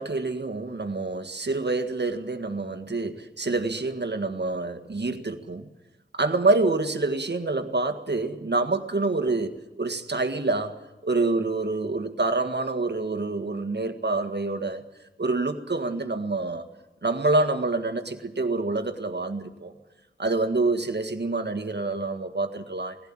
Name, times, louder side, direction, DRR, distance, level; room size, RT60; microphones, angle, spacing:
voice 1, 0.0-5.7 6.1-14.8 15.2-16.6 17.0-19.7 20.2-23.0, right 3 dB, 60° right, 1.8 m, -27 dB
20.0 x 16.5 x 8.9 m
wide cardioid pair, 70°, 20 cm